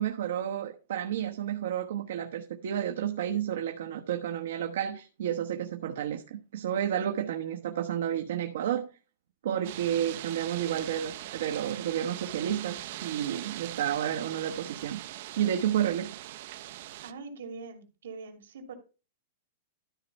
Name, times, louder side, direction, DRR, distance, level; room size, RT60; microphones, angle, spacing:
voice 1, 0.0-8.9 9.4-15.0 15.4-16.1, right 10 dB, 65° right, 1.1 m, -31 dB
sound 1, 9.6-17.1, right 14 dB, 45° right, 0.6 m, -41 dB
voice 2, 17.0-18.8, right 4 dB, 85° right, 2.7 m, -43 dB
13.0 x 4.6 x 5.3 m
supercardioid pair, 180°, 0 cm